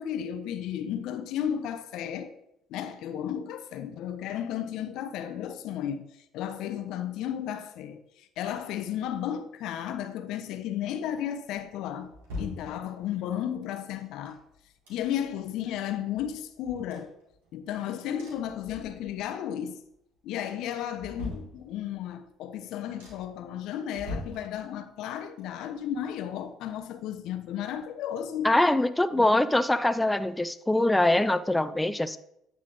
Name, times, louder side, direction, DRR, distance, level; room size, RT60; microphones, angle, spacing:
voice 1, 0.0-2.4 2.7-6.1 6.3-14.4 14.9-17.1 17.5-19.8 20.2-28.5 29.1-29.3, left 10 dB, 70° left, 0.5 m, -34 dB
sound 1, 11.5-13.3 14.0-15.4 15.8-15.9 16.1-17.7 18.2-19.3 19.7-20.2 20.6-22.1 22.5-22.6 23.0-23.5 23.9-25.1 25.4-27.2 27.5-27.6, left 1 dB, 85° right, 2.1 m, -43 dB
voice 2, 28.4-32.2, left 1 dB, 10° left, 0.3 m, -23 dB
9.0 x 3.7 x 3.7 m
hypercardioid pair, 60°, 0 cm